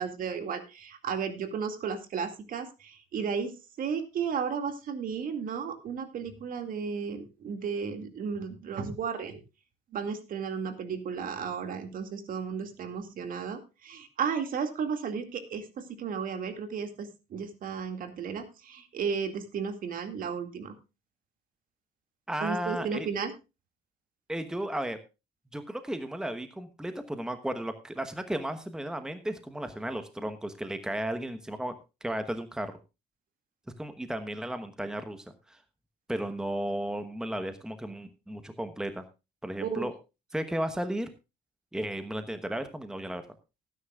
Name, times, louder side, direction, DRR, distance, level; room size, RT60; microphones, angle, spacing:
voice 1, 0.0-9.4 9.9-20.7 22.4-23.3 39.6-39.9, right 6 dB, 55° right, 8 dB, 2.3 m, -34 dB
voice 2, 22.3-23.1 24.3-25.0 25.5-31.7 32.0-32.7 33.8-35.6 36.1-39.0 39.4-39.9 40.3-41.1 41.7-43.2, right 1 dB, 5° right, 9 dB, 1.1 m, -34 dB
19.0 x 10.0 x 2.4 m, 0.27 s
cardioid pair, 110°, 17 cm